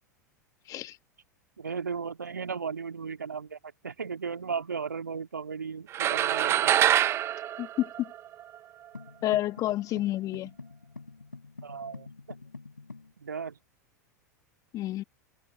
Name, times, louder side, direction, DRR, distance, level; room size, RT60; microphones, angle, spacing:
voice 1, 1.6-6.7 11.6-12.4 13.2-13.6, right 6 dB, 80° right, 2.2 m, -36 dB
sound 1, 5.9-8.6, right 11 dB, 25° right, 0.4 m, -25 dB
voice 2, 7.6-8.1 9.2-10.5 14.7-15.0, left 14 dB, 35° left, 1.4 m, -29 dB
sound 2, 8.9-13.1, left 4 dB, 85° left, 6.7 m, -46 dB
figure-of-eight pair, 90°, 10 cm